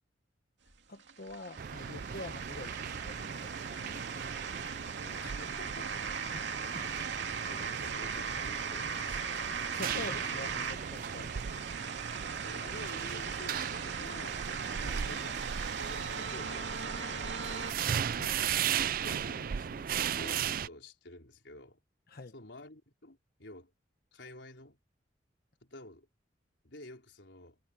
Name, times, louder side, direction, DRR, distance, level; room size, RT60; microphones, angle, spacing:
sound 1, 0.7-17.7, right 6 dB, 75° right, 2.5 m, -39 dB
voice 1, 0.9-4.0 6.3-6.9 9.7-11.3 14.8-15.0 18.1-18.4 22.1-22.3, left 2 dB, 55° left, 1.1 m, -46 dB
sound 2, 1.6-20.7, right 8 dB, 50° right, 0.4 m, -37 dB
voice 2, 5.0-6.7 7.4-9.4 12.4-14.5 15.0-15.4 15.8-17.8 19.0-21.8 22.3-23.7 24.1-24.8 25.6-26.1 26.6-27.6, left 1 dB, 75° left, 4.4 m, -50 dB
head